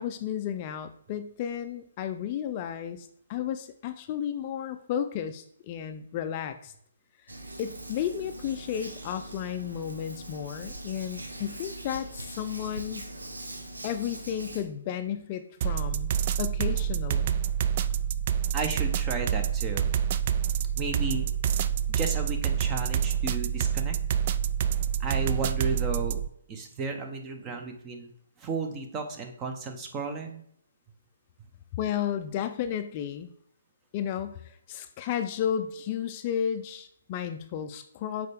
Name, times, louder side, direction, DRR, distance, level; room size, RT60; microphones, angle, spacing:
voice 1, 0.0-6.7 7.6-13.1 13.8-16.1 16.4-17.4 31.7-33.3 33.9-38.3, left 9 dB, 35° left, 8 dB, 0.4 m, -33 dB
Hands, 7.3-14.6, right 1 dB, 90° right, 1.1 m, -42 dB
sound 1, 15.6-26.3, right 9 dB, 40° right, 0.3 m, -27 dB
voice 2, 18.5-19.9 20.8-21.3 21.9-24.0 25.0-26.2 26.5-28.1 28.4-30.4, right 4 dB, 20° right, 5 dB, 0.9 m, -33 dB
6.5 x 4.4 x 3.4 m, 0.67 s
figure-of-eight pair, 140°, 0 cm